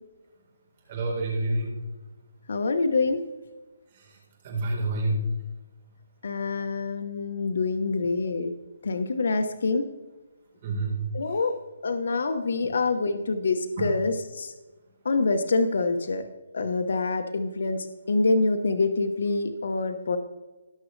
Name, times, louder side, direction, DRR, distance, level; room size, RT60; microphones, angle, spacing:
voice 1, 0.9-1.8 3.9-4.2 4.4-5.2 10.6-11.0 13.8-13.9, right 2 dB, 30° right, -2 dB, 4.0 m, -28 dB
voice 2, 2.5-3.2 6.2-8.5 8.8-9.9 11.1-11.6 11.8-14.5 15.0-16.2 16.5-20.2, left 3 dB, 60° left, 6 dB, 1.0 m, -26 dB
18.5 x 6.2 x 3.3 m, 1.2 s
hypercardioid pair, 170°, 0 cm